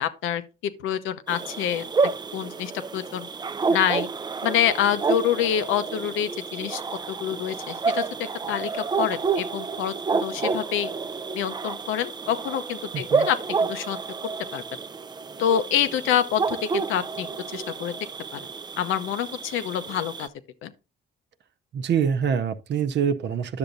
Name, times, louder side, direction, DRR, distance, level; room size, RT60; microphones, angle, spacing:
voice 1, 0.0-1.9 2.3-3.3 3.7-4.1 4.4-6.8 7.1-10.9 11.3-14.0 14.5-14.6 15.4-17.3 17.5-17.9 18.3-18.4 18.8-20.3 20.6-20.7, left 10 dB, 90° left, 0.8 m, -27 dB
sound 1, 1.3-20.3, right 4 dB, 20° right, 0.4 m, -29 dB
voice 2, 12.9-13.3 21.7-23.6, right 7 dB, 60° right, 0.7 m, -25 dB
10.5 x 6.8 x 2.6 m
cardioid pair, 90°, 20 cm